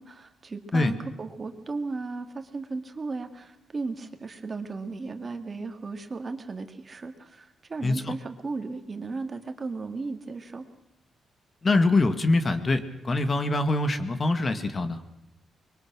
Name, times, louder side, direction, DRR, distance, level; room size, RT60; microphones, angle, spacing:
voice 1, 0.0-10.6, right 3 dB, 35° right, 7 dB, 2.1 m, -35 dB
voice 2, 7.8-8.1 11.6-15.0, left 2 dB, 30° left, 9 dB, 1.9 m, -24 dB
24.5 x 23.0 x 6.2 m, 0.84 s
cardioid pair, 115°, 0 cm